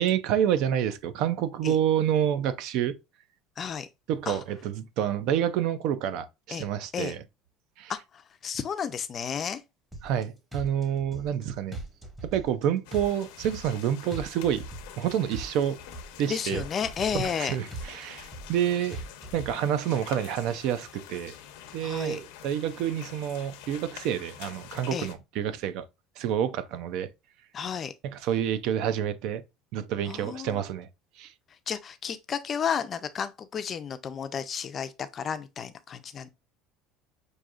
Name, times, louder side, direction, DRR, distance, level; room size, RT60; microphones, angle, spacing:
voice 1, 0.0-3.0 4.1-7.2 7.8-7.9 10.0-11.8 12.2-14.6 15.0-15.8 16.2-16.6 17.1-19.0 19.3-21.3 21.7-25.9 26.2-27.1 28.0-29.4 29.7-30.9 31.2-31.3, right 10 dB, 60° right, 0.4 m, -28 dB
voice 2, 3.6-3.9 4.3-4.4 6.5-6.7 6.9-7.2 7.9-9.6 16.3-17.6 21.8-22.2 24.9-25.1 27.5-27.9 30.1-30.6 31.7-36.3, left 7 dB, 30° left, 0.4 m, -32 dB
sound 1, 9.9-10.2 10.5-11.4 11.7-12.6 12.9-13.8 14.1-15.0 15.3-16.2 16.5-17.4 17.7-18.6 18.9-19.5, right 2 dB, 5° right, 0.8 m, -39 dB
sound 2, 12.8-25.1, left 10 dB, 85° left, 0.7 m, -46 dB
6.1 x 2.6 x 2.4 m
cardioid pair, 150°, 0 cm